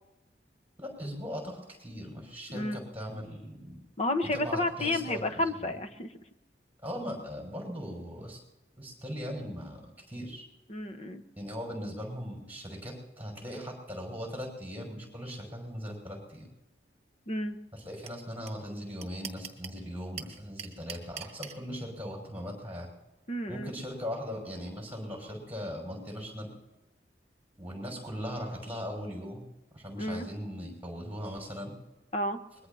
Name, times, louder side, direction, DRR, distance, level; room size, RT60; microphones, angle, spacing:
voice 1, 0.8-3.8 4.2-5.8 6.8-8.4 8.8-9.8 10.1-10.4 11.4-16.5 17.7-22.9 23.5-26.5 27.6-29.4 29.7-31.7, equal, 10° right, 0 dB, 5.7 m, -39 dB
voice 2, 4.0-6.1 10.7-11.2 17.3-17.6 23.3-23.7 30.0-30.3 32.1-32.4, left 1 dB, 35° left, 8 dB, 1.0 m, -31 dB
sound 1, 18.1-18.2 18.5-18.6 18.8-19.8 20.2-21.5, right 8 dB, 35° right, 1.5 m, -40 dB
23.5 x 21.0 x 2.8 m, 1.0 s
head